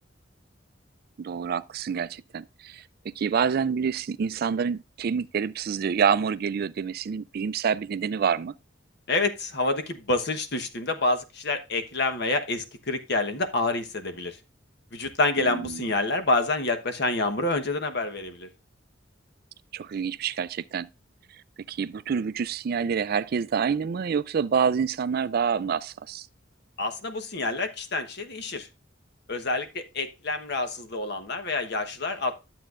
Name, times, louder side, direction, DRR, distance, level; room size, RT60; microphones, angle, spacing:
voice 1, 1.2-8.5 15.4-15.8 19.7-20.9 21.7-26.3, right 6 dB, 50° right, 0.4 m, -27 dB
voice 2, 9.1-14.4 14.9-18.5 26.8-28.7 29.3-32.4, left 2 dB, 60° left, 1.2 m, -27 dB
12.0 x 7.7 x 2.5 m
head